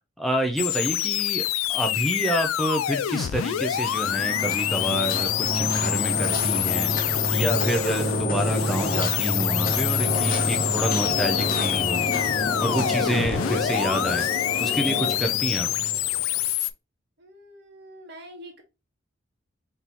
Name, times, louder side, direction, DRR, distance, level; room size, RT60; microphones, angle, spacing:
voice 1, 0.2-1.4 1.7-12.0 12.6-14.3 14.6-15.7, equal, ahead, 3 dB, 0.6 m, -28 dB
sound 1, 0.6-16.7, left 13 dB, 80° left, 0.3 m, -27 dB
sound 2, 3.1-16.4, equal, 45° left, 1.1 m, -29 dB
sound 3, 10.0-15.1, left 3 dB, 25° left, 1.1 m, -31 dB
voice 2, 17.2-18.6, equal, 55° right, 3 dB, 1.4 m, -45 dB
4.2 x 3.6 x 2.9 m, 0.25 s
head